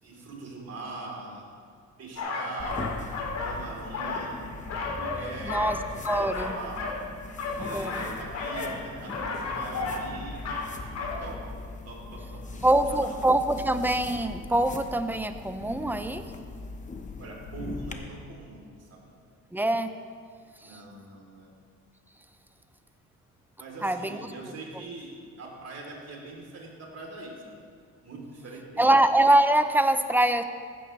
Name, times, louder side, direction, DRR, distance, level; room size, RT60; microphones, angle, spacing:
voice 1, 0.0-1.4 2.0-3.1 3.4-4.5 5.0-6.8 7.6-10.4 10.9-11.6 11.9-13.1 17.2-19.1 20.6-21.5 23.6-27.6 28.0-28.9, right 2 dB, 55° right, -1 dB, 3.6 m, -42 dB
sound 1, 2.2-3.6 3.9-5.2 5.5-7.0 7.3-8.8 9.1-10.1 10.3-10.7 10.9-11.1, left 4 dB, 60° left, 3.0 m, -33 dB
sound 2, 2.6-17.9, left 3 dB, 25° left, 1.2 m, -40 dB
voice 2, 5.4-5.8 6.1-6.5 7.6-8.1 12.6-16.2 19.5-19.9 20.6-20.7 23.8-24.2 28.8-30.4, right 1 dB, 5° right, 9 dB, 0.7 m, -24 dB
15.5 x 13.0 x 3.3 m, 2.2 s
cardioid pair, 90°, 30 cm